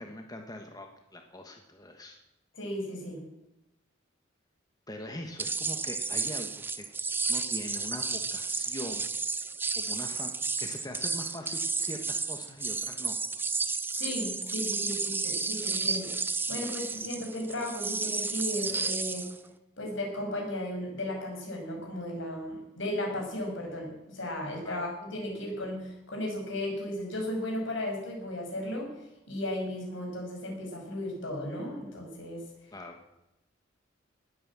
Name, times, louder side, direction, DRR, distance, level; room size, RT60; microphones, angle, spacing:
voice 1, 0.0-2.2 4.9-6.8 7.3-9.1 9.7-10.3 10.6-13.2 24.6-24.8 32.7-33.0, left 1 dB, 20° left, 3 dB, 1.4 m, -42 dB
voice 2, 2.6-3.2 13.9-16.2 16.5-19.3 19.8-28.9 29.3-32.5, left 1 dB, 70° left, 1 dB, 6.1 m, -35 dB
sound 1, 5.4-19.4, right 4 dB, 10° right, 0.6 m, -32 dB
19.5 x 9.1 x 7.5 m, 0.92 s
head